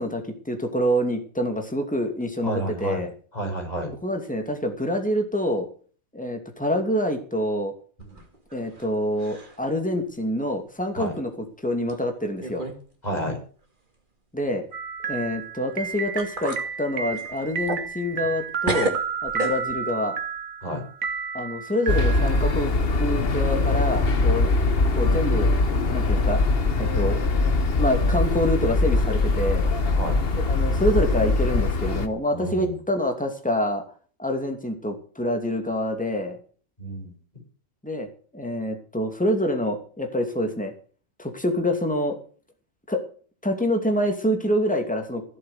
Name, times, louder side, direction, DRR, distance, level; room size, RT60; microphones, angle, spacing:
voice 1, 0.0-3.1 4.0-5.7 6.1-7.7 8.5-12.6 14.3-14.6 15.1-19.0 19.2-20.2 21.3-24.5 24.9-25.5 25.9-26.4 26.8-27.2 27.8-29.6 30.5-33.8 34.2-36.4 37.8-38.1 38.3-40.7 41.2-42.2 42.9-43.0 43.4-45.2, equal, 5° left, 5 dB, 2.6 m, -26 dB
voice 2, 2.4-3.0 3.3-3.9 8.0-8.2 11.0-11.1 13.0-13.4 20.6-20.8 29.9-30.2 32.3-32.7 36.8-37.1, right 1 dB, 30° left, 1 dB, 6.2 m, -30 dB
sound 1, 8.0-8.9 9.2-9.7 10.1-10.2 11.1-11.2 11.9-12.0 12.4-12.8 13.1-13.2 15.7-15.8 16.2-16.7 17.1-18.4 18.6-19.9, right 2 dB, 35° right, 2.6 m, -32 dB
sound 2, 14.7-22.6, right 6 dB, 90° right, 1.8 m, -32 dB
sound 3, 21.9-32.1, left 3 dB, 45° left, 1.4 m, -22 dB
16.0 x 7.9 x 8.1 m, 0.42 s
omnidirectional pair, 1.4 m